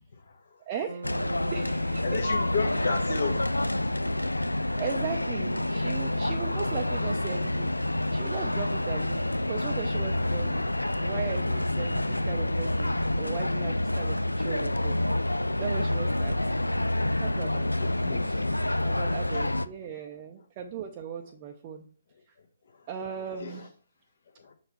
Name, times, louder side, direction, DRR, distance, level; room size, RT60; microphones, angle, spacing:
voice 1, 0.7-2.2 2.7-3.2 4.8-7.8 8.1-10.7 11.0-15.0 15.6-16.7 17.2-17.7 18.2-18.4 18.8-21.9 22.3-22.4 22.9-23.7, right 7 dB, 30° right, 0.6 m, -38 dB
Bass guitar, 0.9-5.0, right 2 dB, 65° right, 1.1 m, -44 dB
sound 1, 1.0-19.7, left 1 dB, 90° left, 0.3 m, -28 dB
voice 2, 2.0-3.4 17.8-18.3 19.3-19.5 23.4-23.7 24.4-24.5, left 5 dB, 55° left, 1.2 m, -33 dB
5.5 x 4.4 x 4.3 m
figure-of-eight pair, 140°, 0 cm